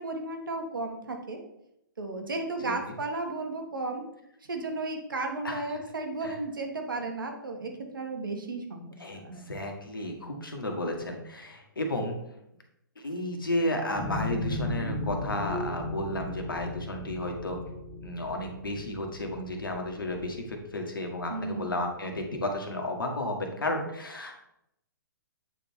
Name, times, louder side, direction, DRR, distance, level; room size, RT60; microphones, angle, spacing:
voice 1, 0.0-1.4 2.0-4.1 4.5-9.4 10.1-10.5 21.3-21.8, right 3 dB, 75° right, 3 dB, 1.5 m, -34 dB
voice 2, 2.6-2.9 5.4-5.6 6.2-6.4 9.0-12.2 13.0-17.6 18.0-24.4, left 1 dB, 80° left, 3 dB, 1.5 m, -33 dB
sound 1, 13.9-20.5, left 2 dB, 30° left, 2.1 m, -36 dB
8.4 x 3.7 x 4.4 m, 0.82 s
figure-of-eight pair, 125°, 11 cm